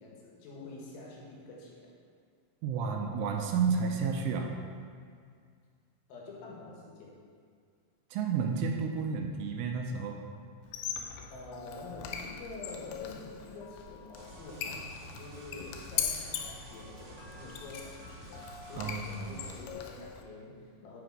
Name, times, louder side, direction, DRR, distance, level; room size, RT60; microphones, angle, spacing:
voice 1, 0.0-1.9 6.1-7.1 11.3-21.0, left 3 dB, 75° left, -3 dB, 3.8 m, -47 dB
voice 2, 2.6-4.5 8.1-10.2 18.8-19.3, right 5 dB, 85° right, 3 dB, 3.0 m, -31 dB
Squeak, 10.6-20.2, left 8 dB, 90° left, 2.5 m, -40 dB
sound 1, 14.1-19.6, right 2 dB, 70° right, 1.5 m, -50 dB
12.0 x 5.0 x 4.7 m, 2.1 s
omnidirectional pair, 5.9 m